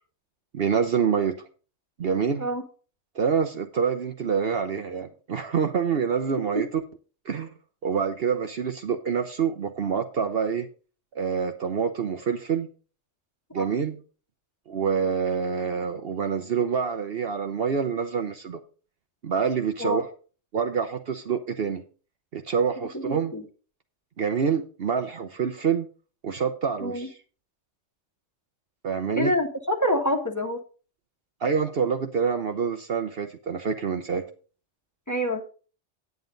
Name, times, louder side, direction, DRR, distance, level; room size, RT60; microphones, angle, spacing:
voice 1, 0.5-1.4 2.0-2.5 3.1-6.8 7.3-7.5 7.8-10.7 11.1-12.7 13.5-14.0 14.7-18.6 19.2-20.1 20.5-21.8 22.3-23.3 24.2-25.9 26.2-27.1 28.8-29.3 31.4-34.2, right 6 dB, 55° right, 7 dB, 1.0 m, -26 dB
voice 2, 22.8-23.4 26.8-27.1 29.2-30.6 35.1-35.4, equal, 15° left, 2 dB, 1.5 m, -27 dB
9.5 x 9.0 x 3.9 m, 0.38 s
omnidirectional pair, 1.3 m